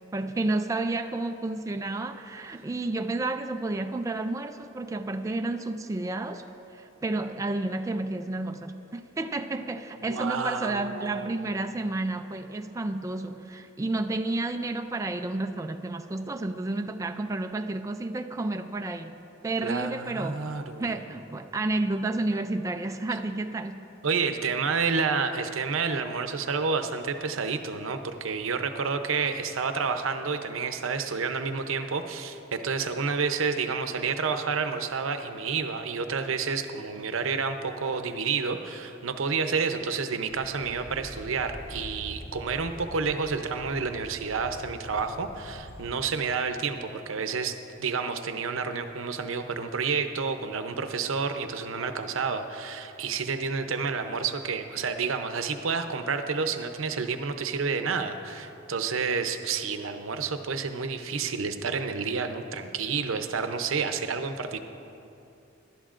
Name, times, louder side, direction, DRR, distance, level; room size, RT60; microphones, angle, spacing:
voice 1, 0.1-6.4 6.7-19.2 19.4-20.5 20.8-23.9, right 2 dB, 15° right, 6 dB, 0.3 m, -31 dB
voice 2, 10.0-11.7 19.6-21.0 23.1-23.2 24.0-64.6, right 5 dB, 85° right, 8 dB, 0.7 m, -30 dB
sound 1, 40.3-46.0, right 1 dB, 35° left, 2.2 m, -44 dB
18.5 x 11.5 x 2.5 m, 2.8 s
head